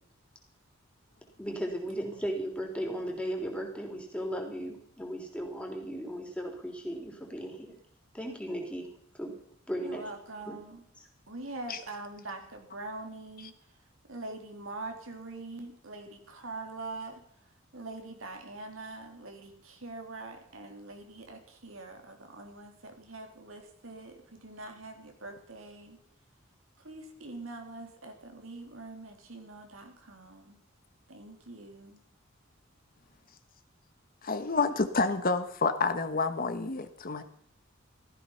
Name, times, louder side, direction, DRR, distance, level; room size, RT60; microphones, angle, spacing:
voice 1, 1.4-7.8 8.1-9.3 9.7-10.0 10.4-10.6, equal, 5° left, 1 dB, 3.4 m, -36 dB
voice 2, 9.8-10.8 11.3-13.5 14.1-17.2 17.7-26.0 26.8-30.6 31.1-32.0, right 2 dB, 80° right, 4 dB, 2.9 m, -43 dB
voice 3, 34.2-37.2, left 4 dB, 45° left, 10 dB, 1.2 m, -29 dB
15.5 x 14.0 x 5.7 m, 0.63 s
head